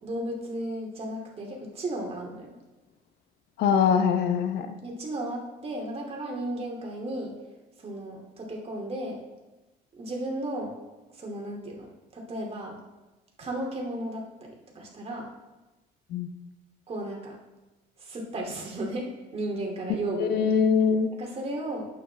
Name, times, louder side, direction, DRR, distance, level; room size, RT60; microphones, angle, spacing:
voice 1, 0.0-2.5 4.8-7.4 7.8-9.2 10.0-10.7 11.1-12.8 13.4-15.3 16.9-17.4 18.0-20.5 21.2-21.9, right 1 dB, 35° right, -1 dB, 2.5 m, -34 dB
voice 2, 3.6-4.7 16.1-16.3 20.2-21.1, left 6 dB, 75° left, 8 dB, 0.9 m, -23 dB
11.5 x 8.5 x 3.4 m, 1.1 s
cardioid pair, 110°, 17 cm